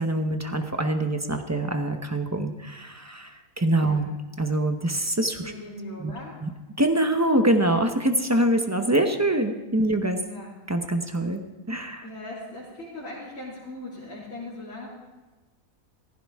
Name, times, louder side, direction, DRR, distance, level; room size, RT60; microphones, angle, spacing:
voice 1, 0.0-4.1 4.4-5.4 6.0-6.1 6.4-6.5 6.8-10.2 10.7-11.4 11.7-12.1, right 1 dB, 15° right, 6 dB, 0.6 m, -24 dB
voice 2, 3.7-4.1 5.4-6.4 10.2-10.5 12.0-14.9, left 1 dB, 55° left, -9 dB, 3.7 m, -39 dB
15.0 x 15.0 x 3.6 m, 1.2 s
omnidirectional pair, 1.6 m